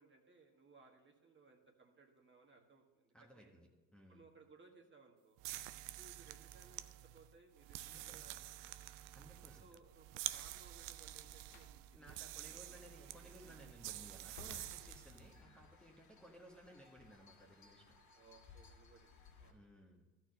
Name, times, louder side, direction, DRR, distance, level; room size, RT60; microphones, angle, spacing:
voice 1, 0.0-3.5 4.1-5.4 6.0-8.4 9.6-13.3 18.1-19.7, right 4 dB, 25° right, 2 dB, 1.6 m, -64 dB
voice 2, 3.1-4.2 7.8-8.3 9.1-9.8 11.9-17.8 19.5-20.0, equal, ahead, -2 dB, 1.3 m, -60 dB
sound 1, 5.4-15.3, right 15 dB, 65° right, 0.6 m, -48 dB
Slam, 11.4-11.8 12.7-12.9 14.2-15.5, left 4 dB, 55° left, 1.0 m, -57 dB
sound 2, 13.8-19.5, left 4 dB, 35° left, 2.5 m, -63 dB
13.0 x 4.7 x 6.5 m, 1.2 s
hypercardioid pair, 70°, 47 cm